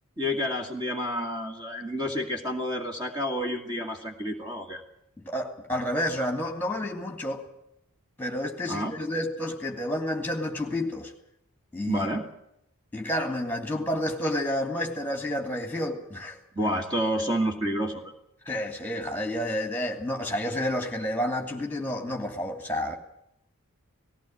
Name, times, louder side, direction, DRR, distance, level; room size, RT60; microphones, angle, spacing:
voice 1, 0.2-4.8 8.7-8.9 11.9-12.2 16.5-18.1, equal, 20° right, 2 dB, 2.3 m, -29 dB
voice 2, 5.2-7.4 8.2-11.1 11.7-12.1 12.9-16.4 18.4-23.0, left 1 dB, 10° left, 4 dB, 2.8 m, -30 dB
19.0 x 16.5 x 9.0 m, 0.79 s
head